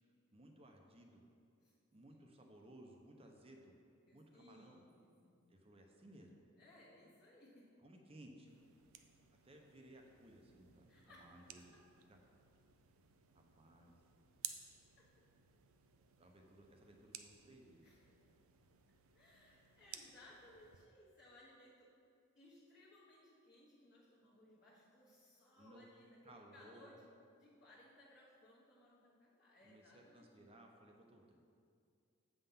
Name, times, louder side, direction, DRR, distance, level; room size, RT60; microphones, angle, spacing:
voice 1, 0.3-1.2 1.9-3.7 4.1-4.8 5.5-6.4 7.8-8.6 9.4-11.8 12.1-12.2 13.3-13.9 16.2-17.9 25.6-25.8 26.2-26.9 29.6-31.4, right 1 dB, 30° right, 2 dB, 0.8 m, -60 dB
voice 2, 4.1-5.4 6.6-7.8 10.9-11.9 15.0-15.3 17.8-18.1 19.1-21.9 22.3-27.1 27.3-30.6, left 1 dB, 40° left, -10 dB, 1.4 m, -64 dB
sound 1, 8.5-20.9, right 10 dB, 80° right, 0.5 m, -57 dB
7.8 x 5.7 x 5.7 m, 2.3 s
head